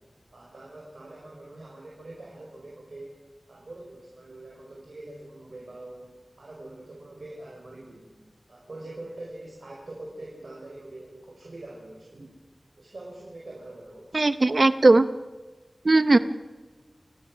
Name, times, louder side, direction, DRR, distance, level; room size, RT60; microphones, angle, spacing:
voice 1, 0.3-3.2 3.5-6.1 6.4-8.1 8.5-12.3 12.8-14.3, right 2 dB, 75° right, -3 dB, 5.3 m, -43 dB
voice 2, 14.1-15.1 15.8-16.2, right 2 dB, 60° right, 12 dB, 0.8 m, -18 dB
28.0 x 18.5 x 6.3 m, 1.3 s
wide cardioid pair, 55°, 0 cm